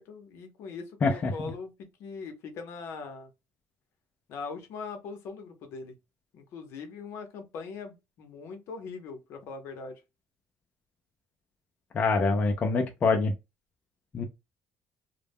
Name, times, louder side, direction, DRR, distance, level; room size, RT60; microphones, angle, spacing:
voice 1, 0.0-3.3 4.3-5.9 6.3-10.0, left 4 dB, 65° left, 0.7 m, -41 dB
voice 2, 1.0-1.3 11.9-13.3 14.1-14.2, left 4 dB, 30° left, 0.4 m, -25 dB
2.1 x 2.0 x 3.3 m
cardioid pair, 135°, 5 cm